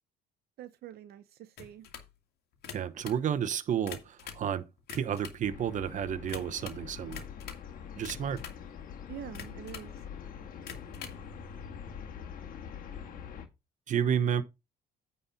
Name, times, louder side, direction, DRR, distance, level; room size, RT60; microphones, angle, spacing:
voice 1, 0.6-1.9 9.1-9.9, right 11 dB, 65° right, 0.7 m, -45 dB
sound 1, 1.6-2.1 2.5-3.2 3.7-4.5 4.8-5.4 6.3-6.8 7.1-7.7 8.0-8.6 9.3-9.9 10.6-11.2, left 8 dB, 70° left, 2.0 m, -45 dB
voice 2, 2.7-7.2 8.0-8.4 13.9-14.4, right 8 dB, 50° right, 0.9 m, -31 dB
sound 2, 5.4-13.5, left 7 dB, 55° left, 2.0 m, -44 dB
9.3 x 4.2 x 5.7 m
cardioid pair, 110°, 17 cm